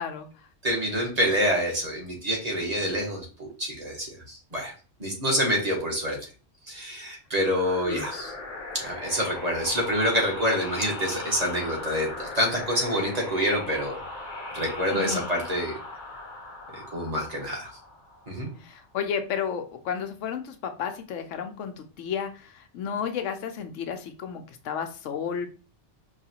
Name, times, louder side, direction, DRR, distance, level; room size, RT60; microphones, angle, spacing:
voice 1, 0.0-0.5 7.9-8.1 14.9-15.3 18.6-25.5, left 7 dB, 85° left, 7 dB, 1.0 m, -32 dB
voice 2, 0.6-4.7 5.0-6.2 6.7-8.3 8.7-14.0 14.5-15.7 16.7-17.7 18.3-18.5, equal, 35° right, -1 dB, 1.2 m, -27 dB
sound 1, 7.3-18.7, left 2 dB, 45° left, 0.8 m, -39 dB
5.3 x 2.4 x 2.8 m, 0.36 s
omnidirectional pair, 1.2 m